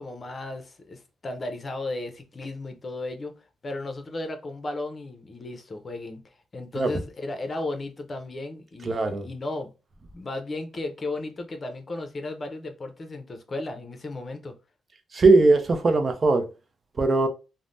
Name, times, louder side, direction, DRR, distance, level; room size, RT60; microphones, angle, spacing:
voice 1, 0.0-3.3 3.6-6.2 6.5-9.7 10.1-14.5, left 2 dB, 35° left, 0.7 m, -35 dB
voice 2, 8.9-9.2 15.1-16.5 17.0-17.3, right 3 dB, 40° right, 0.6 m, -20 dB
3.2 x 2.1 x 2.6 m
cardioid pair, 90°, 0 cm